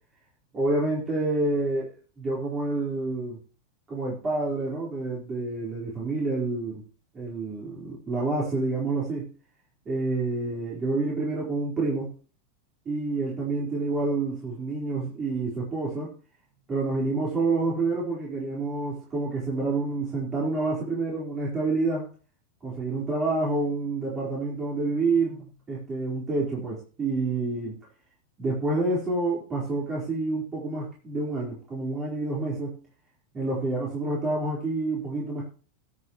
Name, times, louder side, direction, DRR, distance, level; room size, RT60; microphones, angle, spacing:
voice 1, 0.5-3.4 3.9-6.8 7.1-9.3 9.8-12.2 12.8-16.1 16.7-22.0 22.6-27.8 28.4-32.8 33.3-35.4, right 3 dB, 20° right, -5 dB, 4.4 m, -28 dB
21.0 x 7.4 x 3.2 m, 0.38 s
figure-of-eight pair, 90°, 0 cm